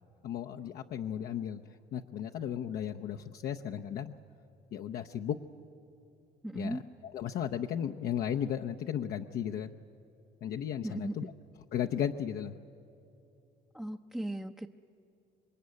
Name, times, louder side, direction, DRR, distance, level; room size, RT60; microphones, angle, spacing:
voice 1, 0.2-4.1 4.7-5.4 6.5-9.8 10.4-11.3 11.7-12.6, left 9 dB, 65° left, 4 dB, 0.8 m, -35 dB
voice 2, 6.4-6.8 10.8-11.1 13.7-14.7, right 1 dB, 5° right, 3 dB, 0.6 m, -37 dB
26.5 x 21.5 x 9.6 m, 2.8 s
cardioid pair, 110°, 17 cm